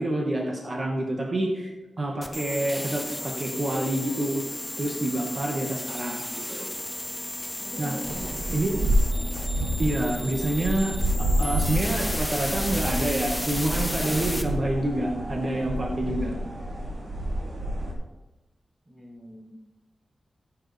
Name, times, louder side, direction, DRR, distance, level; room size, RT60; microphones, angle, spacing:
voice 1, 0.0-1.7 2.0-4.4 4.8-6.7 7.8-7.9 8.5-8.8 9.8-10.9 11.4-16.3, right 1 dB, 40° right, 0 dB, 1.6 m, -27 dB
sound 1, 2.2-14.4, left 1 dB, 10° left, 0.8 m, -34 dB
voice 2, 7.6-8.6 18.9-19.6, equal, 15° right, -1 dB, 1.3 m, -42 dB
sound 2, 8.0-17.9, equal, 60° right, 2.8 m, -29 dB
14.5 x 7.7 x 3.4 m, 1.1 s
wide cardioid pair, 135°, 0 cm